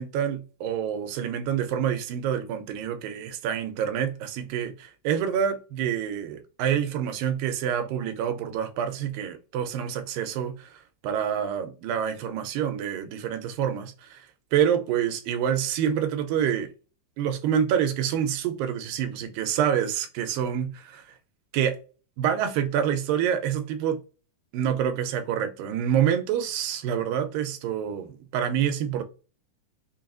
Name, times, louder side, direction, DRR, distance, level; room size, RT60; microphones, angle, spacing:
voice 1, 0.0-10.7 11.0-14.2 14.5-16.7 17.2-20.7 21.5-21.8 22.2-24.0 24.5-29.0, right 9 dB, 85° right, 2.3 m, -27 dB
5.6 x 2.3 x 2.5 m
omnidirectional pair, 3.9 m